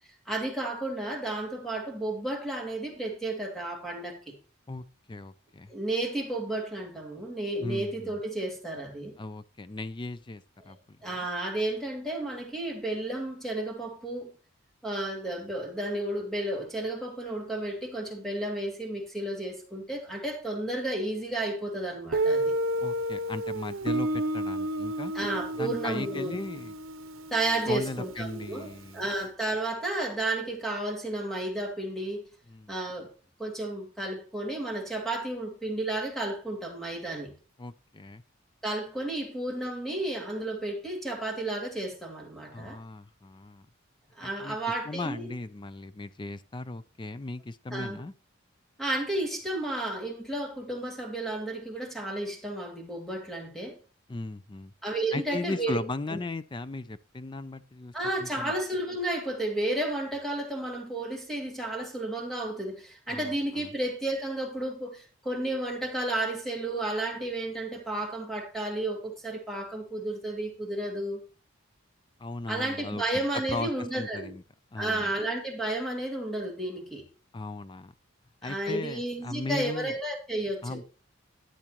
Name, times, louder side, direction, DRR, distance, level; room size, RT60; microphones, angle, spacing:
voice 1, 0.3-4.3 5.7-9.1 10.6-10.7 11.0-14.3 14.8-22.5 25.1-26.4 27.3-28.7 28.9-32.3 32.7-33.1 33.4-37.3 38.6-42.8 44.2-45.3 47.7-48.0 48.8-53.8 54.8-55.8 56.1-56.2 57.9-71.2 72.5-74.3 74.7-77.1 78.4-80.8, right 1 dB, ahead, 2.4 m, -32 dB
voice 2, 4.7-5.7 7.6-8.2 9.2-11.3 22.8-25.1 25.6-26.7 27.7-29.0 32.5-32.7 37.6-38.2 42.5-43.7 44.2-44.6 44.8-48.1 54.1-54.7 55.1-57.9 58.2-58.5 63.1-63.7 72.2-74.4 74.7-75.1 77.3-77.9 78.4-80.0 80.6-80.8, left 2 dB, 25° left, 0.5 m, -37 dB
Guitar, 22.1-28.8, right 1 dB, 85° right, 0.8 m, -31 dB
12.5 x 9.4 x 3.0 m
head